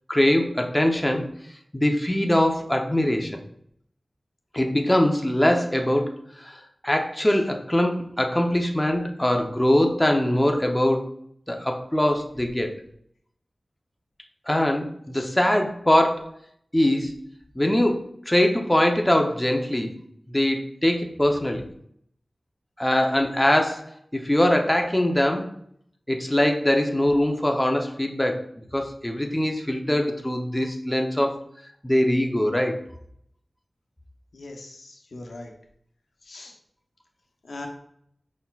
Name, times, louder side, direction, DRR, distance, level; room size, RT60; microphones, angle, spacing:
voice 1, 0.1-1.3 1.7-3.4 4.5-11.1 11.5-12.7 14.5-16.4 16.7-17.2 17.6-19.9 20.3-21.7 22.8-25.5 26.1-31.4 31.8-32.8, left 1 dB, 15° left, 3 dB, 0.7 m, -22 dB
voice 2, 34.3-35.5 36.2-36.5 37.4-37.7, left 2 dB, 90° left, 2 dB, 0.8 m, -40 dB
5.3 x 4.2 x 2.4 m, 0.68 s
wide cardioid pair, 50°, 0 cm